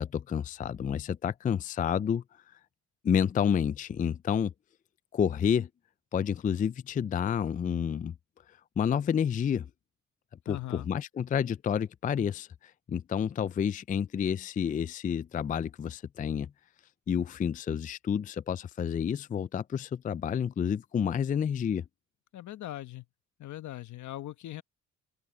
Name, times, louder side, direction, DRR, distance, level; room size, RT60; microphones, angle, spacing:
voice 1, 0.0-2.2 3.0-4.5 5.1-5.7 6.1-8.1 8.5-9.7 10.5-16.5 17.1-21.8, left 8 dB, 30° left, 0.4 m, -29 dB
voice 2, 10.5-10.9 22.3-23.1 23.4-24.6, left 14 dB, 70° left, 1.2 m, -40 dB
open air
cardioid pair, 90°, 30 cm